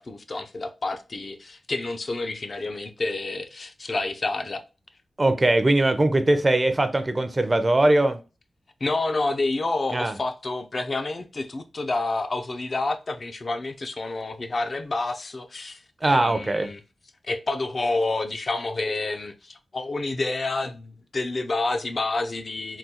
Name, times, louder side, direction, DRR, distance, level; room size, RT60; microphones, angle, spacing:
voice 1, 0.0-4.6 8.8-16.8 17.2-22.8, left 2 dB, 45° left, 0.4 m, -29 dB
voice 2, 5.2-8.2 9.9-10.1 16.0-16.7, right 2 dB, 25° right, 0.4 m, -21 dB
3.7 x 2.2 x 2.7 m
wide cardioid pair, 115°, 0 cm